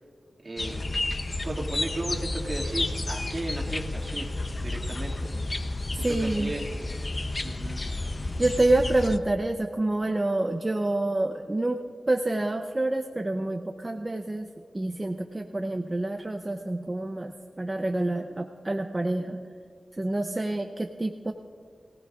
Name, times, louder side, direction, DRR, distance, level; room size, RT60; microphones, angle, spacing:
voice 1, 0.4-0.9 1.3-4.3 4.6-5.3 5.9-6.8 7.4-7.8, right 2 dB, 45° right, -2 dB, 2.1 m, -35 dB
sound 1, 0.6-9.2, left 2 dB, 40° left, 0.6 m, -31 dB
voice 2, 6.0-6.5 8.4-11.8 12.1-14.5 14.7-19.4 19.9-21.3, right 2 dB, 25° right, 5 dB, 0.6 m, -27 dB
23.0 x 16.5 x 2.4 m, 2.2 s
wide cardioid pair, 90°, 0 cm